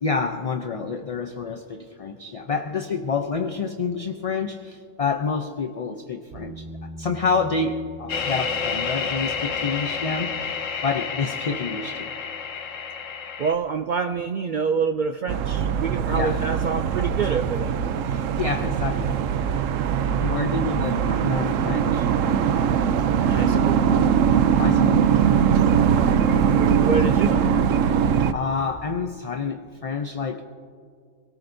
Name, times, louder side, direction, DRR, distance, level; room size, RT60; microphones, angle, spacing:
voice 1, 0.0-6.6 7.0-10.6 10.8-12.1 16.1-16.4 18.4-19.2 19.5-19.6 20.2-22.1 24.6-25.6 28.3-30.4, left 4 dB, 40° left, 6 dB, 0.5 m, -28 dB
sound 1, 6.4-14.0 17.0-17.1, right 1 dB, 30° right, 2.7 m, -44 dB
sound 2, 8.1-13.5, left 6 dB, 90° left, 1.3 m, -29 dB
voice 2, 13.4-17.8 23.2-23.8 26.5-27.6, right 5 dB, 60° right, 7 dB, 0.5 m, -27 dB
sound 3, 15.3-28.3, right 7 dB, 90° right, 1.0 m, -21 dB
27.0 x 18.5 x 2.7 m, 2.2 s
omnidirectional pair, 1.3 m